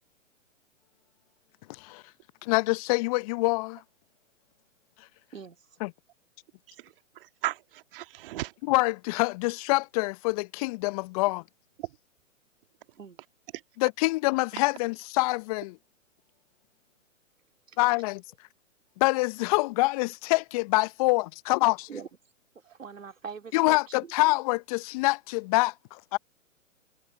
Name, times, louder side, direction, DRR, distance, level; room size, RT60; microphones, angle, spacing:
voice 1, 2.4-3.8 5.8-5.9 8.7-11.4 13.8-15.8 17.8-18.2 19.0-21.9 23.5-26.2, left 24 dB, 30° left, 0.8 m, -26 dB
voice 2, 6.7-8.5 11.8-12.0, right 16 dB, 45° right, 1.9 m, -36 dB
voice 3, 22.6-24.1, right 6 dB, 75° right, 2.8 m, -42 dB
figure-of-eight pair, 120°, 39 cm